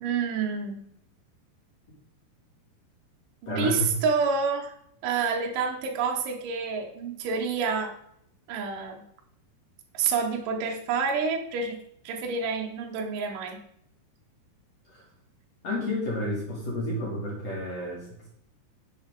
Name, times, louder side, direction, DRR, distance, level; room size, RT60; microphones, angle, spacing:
voice 1, 0.0-0.8 3.4-4.7 5.0-7.9 8.5-9.0 9.9-11.8 12.0-13.6, right 5 dB, 70° right, 1 dB, 2.3 m, -28 dB
voice 2, 3.5-3.9 14.9-15.0 15.6-18.3, left 1 dB, 45° left, -4 dB, 2.8 m, -31 dB
11.5 x 6.6 x 3.7 m, 0.70 s
omnidirectional pair, 4.9 m